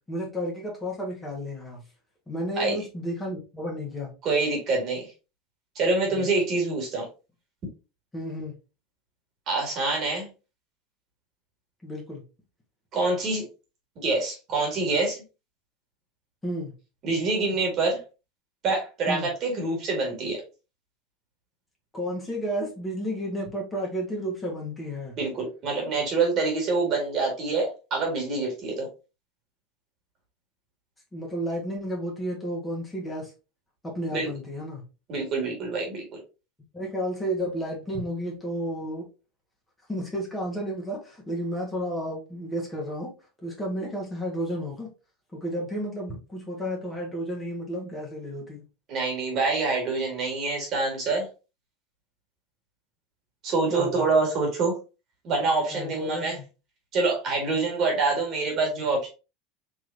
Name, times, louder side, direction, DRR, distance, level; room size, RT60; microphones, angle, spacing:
voice 1, 0.1-1.8 2.3-4.1 6.1-6.3 8.1-8.5 11.8-12.2 16.4-16.7 19.1-19.3 21.9-25.1 31.1-33.3 33.8-34.9 36.7-39.1 39.9-43.1 43.4-44.9 45.3-48.6 53.7-54.1 55.7-56.4, equal, 15° left, -2 dB, 1.5 m, -32 dB
voice 2, 4.2-5.1 5.8-7.1 9.5-10.3 12.9-13.5 14.0-15.2 17.0-18.0 18.6-20.4 25.2-28.9 34.1-34.3 35.1-36.2 48.9-51.3 53.4-54.7 55.2-56.4 56.9-59.1, right 3 dB, 45° right, 1 dB, 2.0 m, -26 dB
3.7 x 3.0 x 2.7 m, 0.31 s
hypercardioid pair, 85°, 0 cm